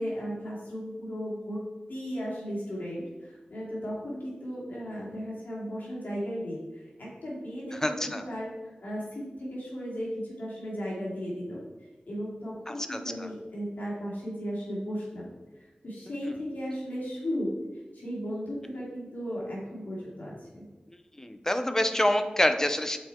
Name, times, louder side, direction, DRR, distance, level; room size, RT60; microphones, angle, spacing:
voice 1, 0.0-1.6 1.9-11.6 12.1-17.5 17.9-20.6, equal, 80° left, -6 dB, 2.3 m, -36 dB
voice 2, 7.8-8.2 12.7-13.0 21.2-23.0, left 1 dB, 15° left, 8 dB, 0.6 m, -26 dB
6.6 x 4.6 x 4.3 m, 1.2 s
wide cardioid pair, 55°, 3 cm